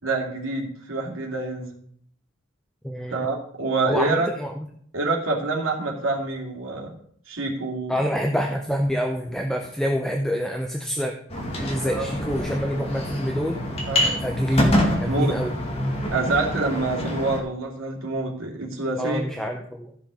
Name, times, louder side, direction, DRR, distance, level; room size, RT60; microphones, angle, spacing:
voice 1, 0.0-1.8 3.1-4.3 4.9-6.9 7.3-8.0 11.4-12.1 13.9-14.2 15.1-15.3 16.1-19.2, right 3 dB, 80° right, 0 dB, 2.5 m, -27 dB
voice 2, 2.8-3.3 3.9-4.5 7.9-11.1 11.6-13.6 14.2-15.5 19.0-19.9, equal, 5° left, 3 dB, 0.6 m, -26 dB
sound 1, 11.3-17.4, left 1 dB, 30° left, 2.2 m, -26 dB
14.5 x 5.5 x 5.0 m, 0.64 s
head